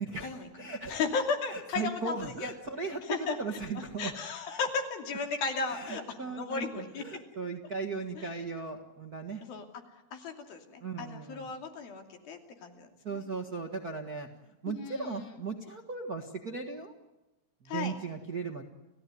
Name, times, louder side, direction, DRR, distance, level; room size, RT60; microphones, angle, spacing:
voice 1, 0.0-1.0 1.5-4.1 5.6-9.4 10.8-11.5 13.0-14.3 14.6-16.9 17.6-18.6, right 4 dB, 40° right, 2 dB, 1.4 m, -37 dB
voice 2, 0.9-2.5 3.1-3.4 4.0-7.0 8.2-8.3 9.4-9.7 10.1-13.2 14.7-15.2 17.7-17.9, left 5 dB, 75° left, 3 dB, 4.6 m, -35 dB
30.0 x 16.5 x 9.5 m, 1.0 s
omnidirectional pair, 4.2 m